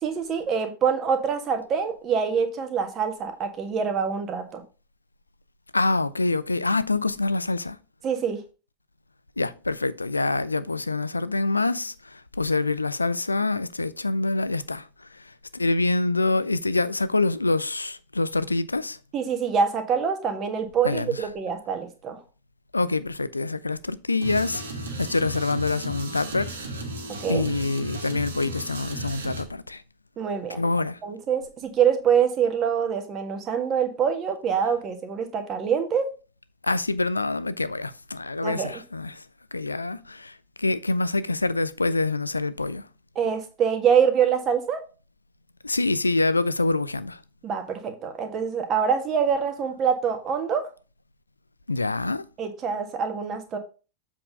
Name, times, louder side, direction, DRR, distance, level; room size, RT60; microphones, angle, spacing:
voice 1, 0.0-4.6 8.0-8.4 19.1-22.2 27.2-27.4 30.2-30.6 31.0-36.1 38.4-38.8 43.1-44.8 47.4-50.7 52.4-53.6, right 7 dB, 30° right, 1.5 m, -25 dB
voice 2, 5.7-7.8 9.4-14.9 15.1-19.0 20.8-21.3 22.7-26.7 27.3-29.8 30.5-31.0 36.6-39.2 39.5-42.9 45.6-47.2 51.7-52.2, left 3 dB, 80° left, 0.5 m, -26 dB
sound 1, 24.2-29.4, right 1 dB, 70° right, 1.8 m, -35 dB
7.5 x 4.3 x 5.2 m
figure-of-eight pair, 90°, 0 cm